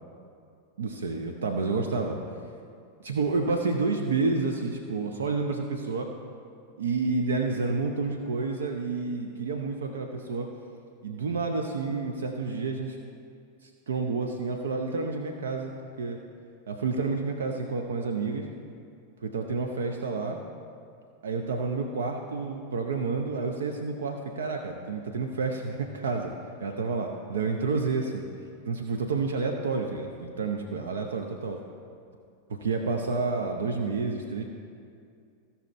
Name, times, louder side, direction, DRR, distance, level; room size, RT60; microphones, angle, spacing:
voice 1, 0.8-2.2 3.0-6.1 6.8-10.5 11.0-13.0 13.9-15.7 16.0-16.2 16.7-18.5 19.2-20.4 21.2-26.3 26.6-28.3 28.6-31.6 32.5-34.4, right 4 dB, 65° right, 3 dB, 0.7 m, -29 dB
15.5 x 5.7 x 4.2 m, 2.4 s
figure-of-eight pair, 90°, 0 cm